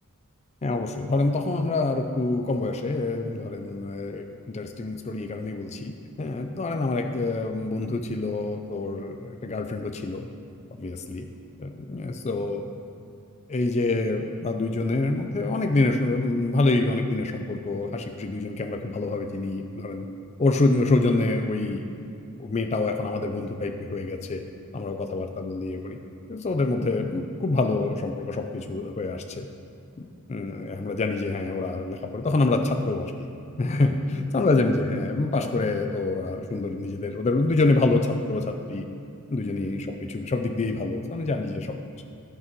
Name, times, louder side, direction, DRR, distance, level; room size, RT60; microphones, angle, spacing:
voice 1, 0.6-10.3 10.8-11.3 11.6-12.6 13.5-20.1 20.4-21.9 22.4-24.4 24.7-26.0 26.3-29.5 30.0-33.3 33.6-38.9 39.3-41.8, left 2 dB, 30° left, 5 dB, 0.4 m, -26 dB
12.5 x 5.9 x 4.6 m, 2.6 s
head